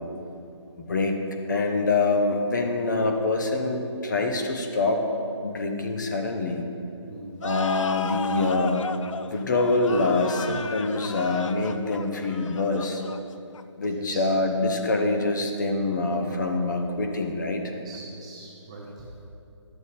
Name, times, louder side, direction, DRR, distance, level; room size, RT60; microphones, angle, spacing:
voice 1, 1.5-5.0 5.4-6.6 7.4-8.9 9.3-13.0 13.8-17.7, left 3 dB, 40° left, 4 dB, 0.8 m, -25 dB
voice 2, 7.0-7.4 13.9-14.3 16.3-16.6 17.6-19.3, right 2 dB, 10° right, -4 dB, 0.5 m, -43 dB
sound 1, 7.4-13.9, left 5 dB, 85° left, 0.4 m, -35 dB
11.0 x 7.0 x 4.2 m, 2.7 s
hypercardioid pair, 170°, 16 cm